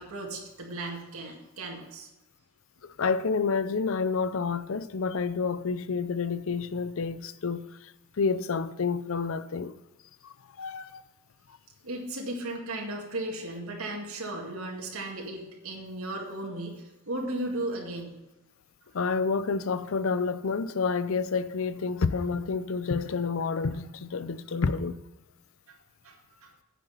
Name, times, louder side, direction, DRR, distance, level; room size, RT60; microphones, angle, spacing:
voice 1, 0.0-2.1 11.8-18.1 25.7-25.8 26.0-26.5, right 1 dB, 75° right, 2.0 m, -36 dB
voice 2, 2.8-7.7 8.2-9.7 10.2-11.0 18.9-25.0, left 5 dB, 65° left, 0.5 m, -29 dB
9.6 x 7.0 x 5.6 m
head